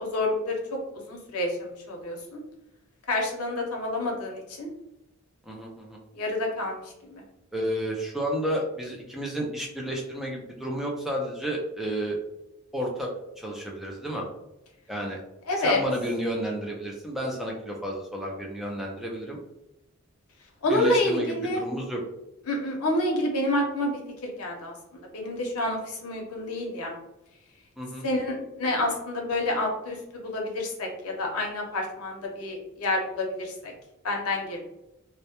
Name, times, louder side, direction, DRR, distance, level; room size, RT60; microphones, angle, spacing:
voice 1, 0.0-2.4 3.1-4.7 6.1-6.8 7.1-7.2 15.5-15.8 20.6-21.6 22.5-26.9 28.0-33.7 34.0-34.6, left 1 dB, 90° left, 0 dB, 0.6 m, -28 dB
voice 2, 5.5-6.0 7.5-12.2 12.7-14.3 14.9-15.2 15.6-19.4 20.7-22.0 27.8-28.1, equal, ahead, -2 dB, 0.3 m, -31 dB
2.1 x 2.1 x 2.8 m, 0.89 s
head